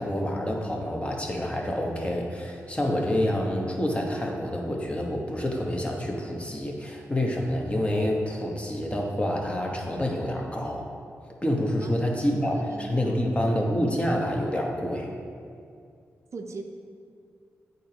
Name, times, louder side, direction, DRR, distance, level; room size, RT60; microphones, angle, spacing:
voice 1, 0.0-10.9 11.4-15.1, left 1 dB, 20° left, 0 dB, 1.0 m, -27 dB
voice 2, 12.3-13.2 16.3-16.6, right 3 dB, 60° right, 4 dB, 0.4 m, -39 dB
8.4 x 3.9 x 2.9 m, 2.3 s
cardioid pair, 50°, 6 cm